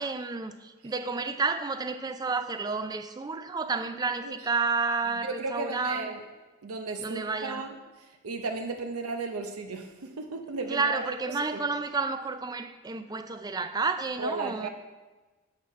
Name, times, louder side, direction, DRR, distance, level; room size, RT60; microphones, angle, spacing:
voice 1, 0.0-6.2 7.0-7.6 10.7-14.7, right 4 dB, 20° right, 0.3 m, -30 dB
voice 2, 5.2-6.2 6.6-7.7 8.0-11.6 14.2-14.7, right 3 dB, 80° right, 0.7 m, -35 dB
8.5 x 5.8 x 4.6 m
head